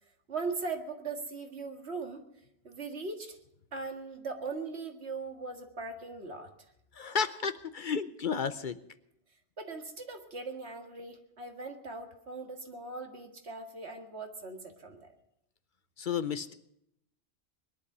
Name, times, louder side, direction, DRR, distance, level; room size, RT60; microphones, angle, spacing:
voice 1, 0.3-2.3 2.6-3.4 3.7-6.5 9.6-15.1, right 4 dB, 75° right, 4 dB, 2.2 m, -39 dB
voice 2, 6.9-8.8 16.0-16.5, left 6 dB, 50° left, 13 dB, 0.8 m, -32 dB
20.5 x 11.0 x 6.1 m, 0.78 s
omnidirectional pair, 1.1 m